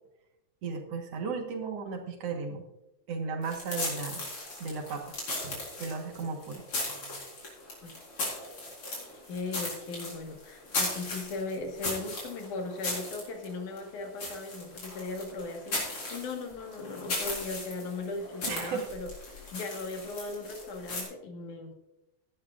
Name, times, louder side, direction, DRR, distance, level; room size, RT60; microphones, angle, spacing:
voice 1, 0.6-2.7 3.1-4.2 4.6-5.2 5.4-7.2 8.9-9.0 18.5-18.9, right 5 dB, 60° right, 3 dB, 2.3 m, -36 dB
sound 1, 3.4-21.0, left 2 dB, 45° left, 4.9 m, -37 dB
voice 2, 9.3-21.8, left 3 dB, 90° left, 3 dB, 3.1 m, -38 dB
17.0 x 11.5 x 2.5 m, 0.92 s
omnidirectional pair, 3.4 m